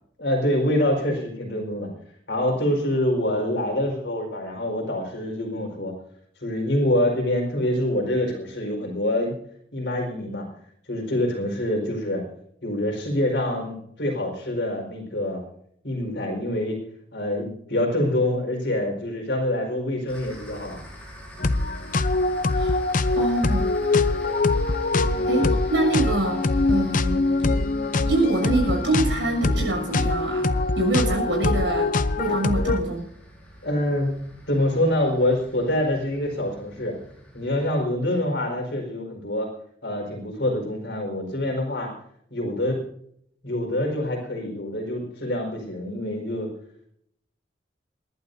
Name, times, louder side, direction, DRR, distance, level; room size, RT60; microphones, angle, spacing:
voice 1, 0.2-1.9 2.3-5.9 6.4-9.4 9.7-10.4 10.9-12.2 12.6-15.4 15.8-16.8 17.1-20.8 25.0-25.5 32.5-32.6 33.6-34.2 34.5-36.9 37.3-39.5 39.8-41.9 42.3-42.8 43.4-46.5, left 1 dB, 70° left, 1 dB, 4.6 m, -25 dB
sound 1, 20.1-37.7, equal, 10° left, 4.8 m, -45 dB
sound 2, 21.4-32.8, left 2 dB, 50° left, 0.7 m, -23 dB
voice 2, 23.1-23.7 25.2-27.3 28.0-30.5 30.7-31.9 32.2-33.1, right 2 dB, 90° right, 1 dB, 6.6 m, -25 dB
28.5 x 11.5 x 2.7 m, 0.69 s
head